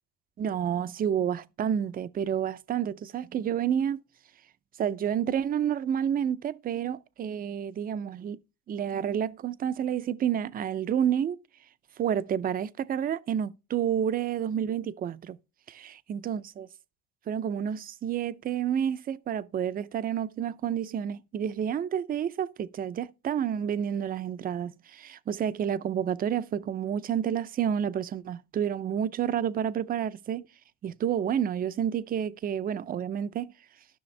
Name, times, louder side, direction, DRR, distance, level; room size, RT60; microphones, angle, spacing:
voice 1, 0.4-4.0 4.8-8.4 8.7-11.4 12.0-15.4 15.7-16.7 17.3-30.4 30.8-33.5, right 9 dB, 25° right, 0.4 m, -29 dB
13.0 x 6.2 x 3.2 m
cardioid pair, 140°, 36 cm